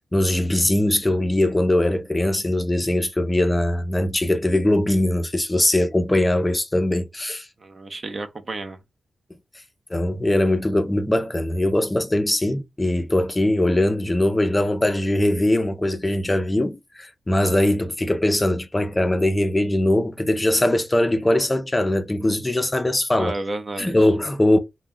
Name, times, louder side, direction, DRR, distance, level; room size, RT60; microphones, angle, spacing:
voice 1, 0.1-7.5 9.9-23.3 23.8-24.6, left 1 dB, 20° left, 0.4 m, -21 dB
voice 2, 7.6-8.8 23.2-24.1, right 2 dB, 45° right, 0.6 m, -32 dB
2.3 x 2.1 x 3.6 m
cardioid pair, 75°, 0 cm